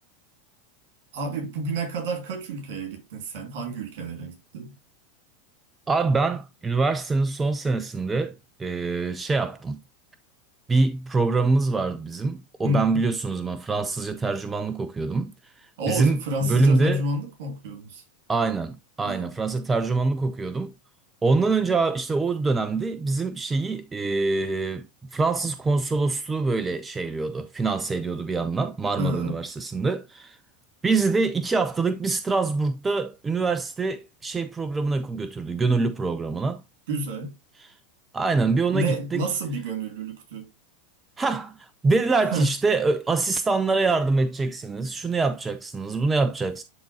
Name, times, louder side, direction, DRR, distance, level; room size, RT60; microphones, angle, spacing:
voice 1, 1.1-4.7 12.6-13.1 15.8-18.0 19.0-19.3 29.0-29.4 36.9-37.4 38.7-40.5 42.3-42.5, right 1 dB, 65° right, 2.6 m, -29 dB
voice 2, 5.9-9.8 10.7-15.3 15.6-16.2 16.4-17.0 18.3-20.7 21.2-30.4 30.8-36.6 37.6-37.7 38.1-39.2 41.2-46.6, right 3 dB, 15° right, 0.6 m, -25 dB
11.0 x 3.8 x 2.8 m
hypercardioid pair, 95°, 0 cm